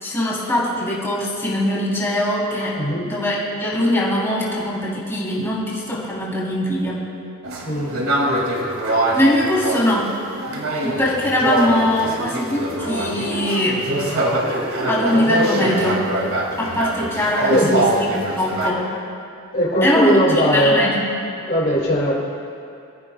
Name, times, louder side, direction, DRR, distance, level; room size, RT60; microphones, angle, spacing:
voice 1, 0.0-2.8 3.0-7.0 9.1-10.1 10.8-13.8 14.9-16.0 16.6-18.8 19.8-21.1, left 1 dB, 10° left, -6 dB, 3.1 m, -21 dB
voice 2, 2.8-3.1 7.6-7.9 17.5-17.9 19.5-20.9 21.5-22.1, equal, 45° left, -5 dB, 2.3 m, -19 dB
sound 1, 7.4-18.7, right 1 dB, 70° right, 2.1 m, -23 dB
24.0 x 14.5 x 2.2 m, 2.5 s
head